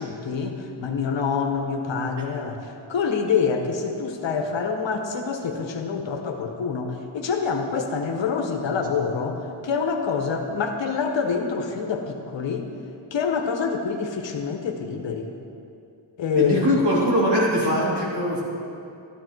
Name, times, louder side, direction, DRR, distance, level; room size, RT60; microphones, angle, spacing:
voice 1, 0.0-12.7 13.1-15.3 16.2-16.8, left 5 dB, 75° left, 4 dB, 1.4 m, -26 dB
voice 2, 16.4-18.4, equal, 60° right, -6 dB, 3.7 m, -21 dB
13.0 x 12.5 x 4.7 m, 2.6 s
wide cardioid pair, 130°, 45 cm